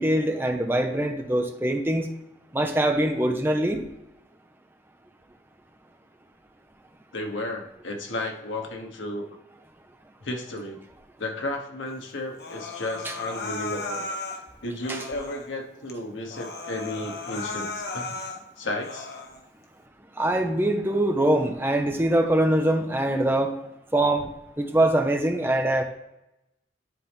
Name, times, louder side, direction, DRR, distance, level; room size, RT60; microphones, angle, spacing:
voice 1, 0.0-2.1 2.5-3.8 13.0-13.1 14.9-15.0 20.2-23.5 23.9-24.3 24.6-25.8, right 1 dB, 10° right, 4 dB, 0.7 m, -23 dB
voice 2, 7.1-9.3 10.2-10.8 11.2-14.2 14.6-18.2 18.6-19.1, left 1 dB, 90° left, 3 dB, 1.3 m, -33 dB
Human voice, 12.4-14.4 14.8-15.5 15.9-16.0 16.3-18.4 18.8-19.4, left 3 dB, 55° left, 0.9 m, -35 dB
10.5 x 4.2 x 3.4 m, 0.91 s
head